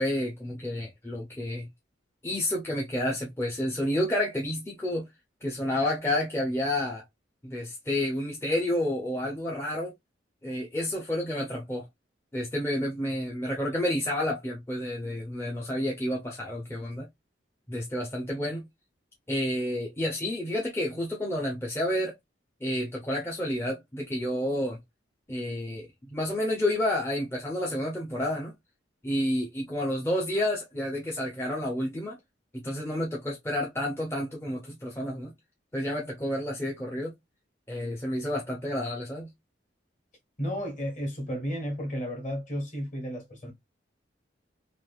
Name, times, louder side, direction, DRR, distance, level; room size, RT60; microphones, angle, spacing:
voice 1, 0.0-1.7 2.2-5.1 5.4-7.0 7.4-9.9 10.4-11.8 12.3-17.1 17.7-18.7 19.3-22.2 22.6-24.8 25.3-28.5 29.0-32.2 32.5-35.3 35.7-37.1 37.7-39.3, left 1 dB, 15° left, 0.6 m, -30 dB
voice 2, 40.4-43.5, equal, 45° left, 1.4 m, -33 dB
3.2 x 2.5 x 2.3 m
head